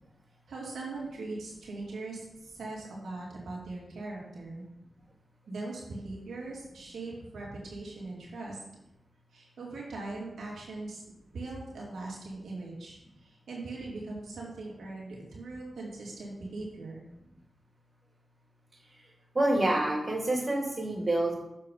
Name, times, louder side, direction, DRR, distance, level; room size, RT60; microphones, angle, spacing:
voice 1, 0.5-4.6 5.5-8.6 9.3-11.0 11.3-17.0, right 2 dB, 90° right, -4 dB, 2.3 m, -40 dB
voice 2, 19.3-21.4, right 1 dB, 40° right, -1 dB, 2.5 m, -27 dB
7.1 x 4.6 x 5.3 m, 0.88 s
cardioid pair, 50°, 0 cm